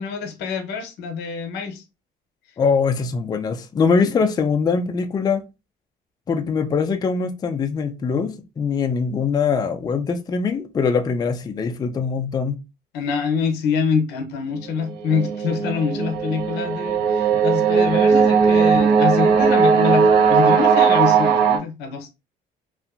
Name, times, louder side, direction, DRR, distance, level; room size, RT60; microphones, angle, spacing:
voice 1, 0.0-1.8 12.9-22.1, left 6 dB, 85° left, 0.7 m, -25 dB
voice 2, 2.6-5.4 6.3-12.6, left 5 dB, 25° left, 0.3 m, -22 dB
sound 1, 14.9-21.6, right 6 dB, 70° right, 0.8 m, -17 dB
2.6 x 2.4 x 2.4 m
cardioid pair, 110°, 17 cm